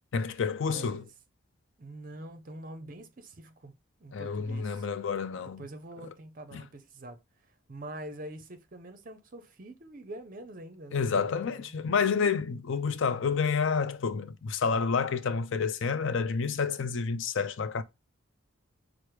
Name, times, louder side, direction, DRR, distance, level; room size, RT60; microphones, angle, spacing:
voice 1, 0.1-1.0 4.1-5.6 6.5-6.6 10.9-17.8, left 5 dB, 65° left, 0.4 m, -29 dB
voice 2, 0.6-1.1 1.8-4.9 5.4-11.9, right 1 dB, 40° right, 0.5 m, -45 dB
4.8 x 2.0 x 4.5 m
head